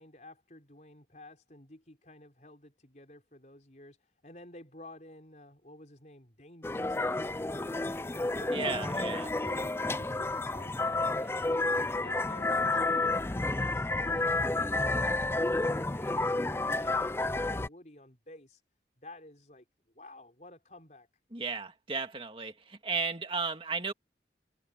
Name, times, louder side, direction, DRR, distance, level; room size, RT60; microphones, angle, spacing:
voice 1, 0.0-18.6 19.0-19.7 19.9-21.1, left 1 dB, 40° left, 5.4 m, -52 dB
sound 1, 6.6-17.7, left 2 dB, 15° left, 0.4 m, -30 dB
voice 2, 8.5-9.3 21.3-23.9, right 4 dB, 30° right, 2.1 m, -34 dB
head